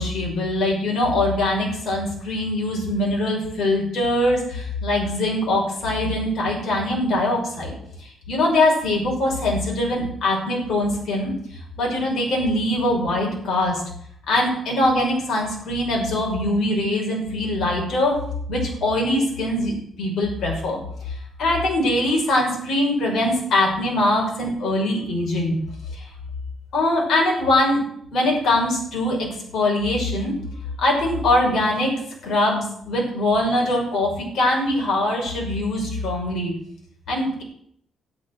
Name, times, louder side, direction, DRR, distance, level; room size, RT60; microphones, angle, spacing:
voice 1, 0.0-11.3 11.8-13.8 14.3-18.1 18.5-20.8 21.4-25.6 25.9-26.0 26.7-27.8 28.1-30.3 30.8-31.9 32.2-36.5 37.1-37.4, left 1 dB, 65° left, -1 dB, 6.1 m, -22 dB
12.5 x 11.0 x 6.2 m, 0.68 s
cardioid pair, 140°, 0 cm